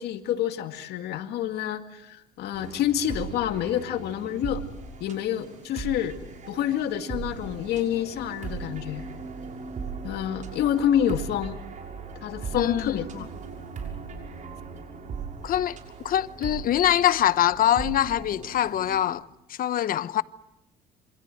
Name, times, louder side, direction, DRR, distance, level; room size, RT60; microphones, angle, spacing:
voice 1, 0.0-4.6 5.0-6.2 6.5-9.1 10.0-11.6 12.2-13.3, left 10 dB, 75° left, 2.3 m, -28 dB
sound 1, 2.5-19.0, right 5 dB, 50° right, 6.3 m, -39 dB
voice 2, 12.6-13.0 15.4-15.8 16.0-19.2 19.5-20.2, left 11 dB, 55° left, 1.0 m, -23 dB
27.5 x 26.0 x 7.9 m
cardioid pair, 110°, 17 cm